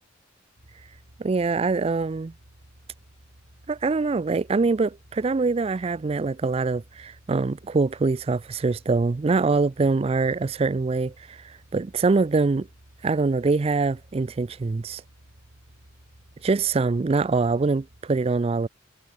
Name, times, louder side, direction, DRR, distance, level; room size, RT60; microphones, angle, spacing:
sound 1, 0.6-18.0, right 1 dB, 70° right, 3.2 m, -54 dB
voice 1, 1.2-2.3 3.7-11.4 11.7-12.7 13.0-15.0 16.4-18.7, right 3 dB, 30° right, 0.4 m, -24 dB
head